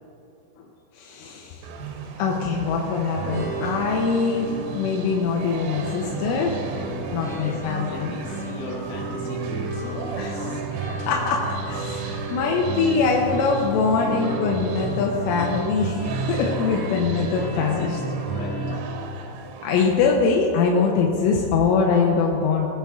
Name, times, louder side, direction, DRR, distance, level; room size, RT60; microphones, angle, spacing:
voice 1, 1.0-1.6 2.2-6.6 7.1-8.1 10.2-10.4 10.7-16.0 16.3-17.9 19.6-22.7, left 5 dB, 85° left, -1 dB, 3.4 m, -23 dB
sound 1, 1.6-19.8, right 5 dB, 90° right, 3.5 m, -37 dB
sound 2, 3.1-18.8, right 2 dB, 40° right, 3.2 m, -32 dB
voice 2, 7.1-11.2 13.9-14.6 15.5-15.7 16.7-18.6, left 2 dB, 65° left, -5 dB, 4.6 m, -38 dB
19.5 x 7.8 x 3.6 m, 2.9 s
omnidirectional pair, 5.6 m